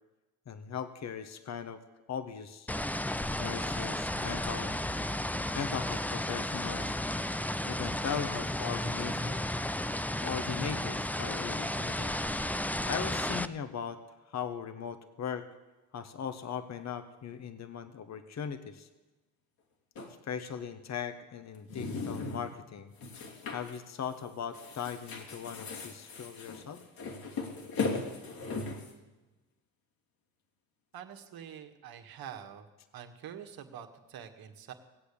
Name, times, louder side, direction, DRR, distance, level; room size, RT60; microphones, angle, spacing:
voice 1, 0.5-1.8 2.1-2.7 3.4-4.8 5.5-7.0 7.7-9.5 10.2-12.1 12.8-14.0 14.3-15.5 15.9-18.9 20.2-22.9 23.5-26.8, left 7 dB, 40° left, 10 dB, 1.3 m, -39 dB
sound 1, 2.7-13.5, left 1 dB, 5° left, 0.6 m, -33 dB
sound 2, 20.0-20.1 21.5-22.5 23.0-23.8 24.1-24.3 24.5-28.9, left 4 dB, 60° left, 3.0 m, -38 dB
voice 2, 30.9-32.7 32.9-34.7, right 9 dB, 60° right, 5 dB, 1.8 m, -46 dB
18.5 x 8.3 x 8.4 m, 1.1 s
hypercardioid pair, 60°, 40 cm